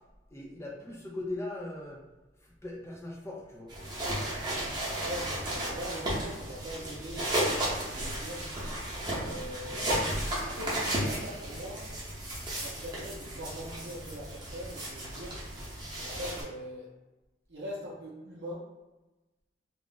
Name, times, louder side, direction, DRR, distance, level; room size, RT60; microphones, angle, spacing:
voice 1, 0.3-2.0 2.4-3.7, left 2 dB, 15° left, -2 dB, 0.5 m, -39 dB
sound 1, 3.7-16.4, right 1 dB, 25° right, 0.9 m, -34 dB
voice 2, 4.9-8.5 9.2-10.2 10.4-11.9 12.4-15.4 16.0-16.9 17.5-18.7, equal, 75° right, -6 dB, 0.6 m, -42 dB
2.4 x 2.0 x 3.8 m, 1.1 s
head